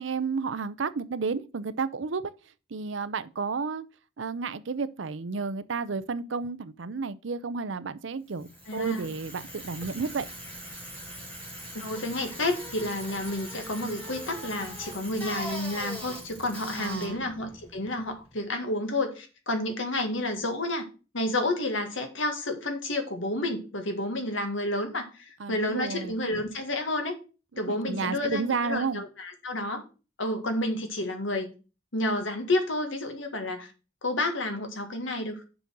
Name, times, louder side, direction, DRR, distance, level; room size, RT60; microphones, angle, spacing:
voice 1, 0.0-2.3 2.7-3.8 4.2-10.3 16.8-17.3 25.4-26.2 27.5-29.0, right 4 dB, 70° right, 0.6 m, -32 dB
Bicycle, 8.3-18.4, equal, 5° left, 2.9 m, -41 dB
voice 2, 8.7-9.0 11.8-20.8 21.1-27.2 27.6-29.8 30.2-31.5 31.9-33.7 34.0-35.4, left 1 dB, 70° left, 1.8 m, -30 dB
6.9 x 5.4 x 6.1 m
head